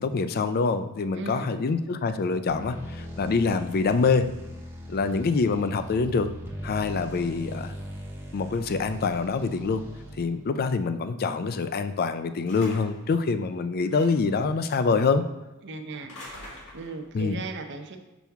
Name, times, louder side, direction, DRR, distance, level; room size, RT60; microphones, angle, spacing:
voice 1, 0.0-4.3 4.9-6.3 6.6-7.7 8.3-9.8 10.2-15.2 17.1-17.4, left 4 dB, 45° left, 11 dB, 0.4 m, -25 dB
voice 2, 1.1-1.5 15.6-16.4 16.7-18.0, right 3 dB, 55° right, 5 dB, 0.6 m, -37 dB
sound 1, 2.5-10.4, equal, 10° right, 0.8 m, -40 dB
sound 2, 12.5-13.1 13.8-14.3 15.9-17.1, left 1 dB, 65° left, 1.9 m, -44 dB
6.1 x 5.7 x 3.5 m, 1.0 s
head